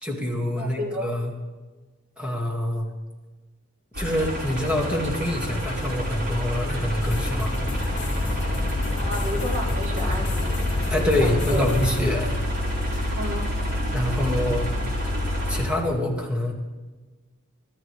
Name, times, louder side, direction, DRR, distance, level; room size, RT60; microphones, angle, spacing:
voice 1, 0.0-1.3 2.2-2.9 4.0-7.5 10.9-12.4 13.9-14.7 15.5-16.5, left 1 dB, 5° right, -1 dB, 2.3 m, -26 dB
voice 2, 0.6-1.1 8.9-10.5 11.2-11.6 13.1-13.5, equal, 70° right, -3 dB, 3.5 m, -31 dB
sound 1, 3.9-15.6, left 1 dB, 50° right, 5.2 m, -27 dB
sound 2, 7.0-12.0, left 1 dB, 55° left, 1.8 m, -32 dB
24.5 x 14.0 x 3.4 m, 1.3 s
head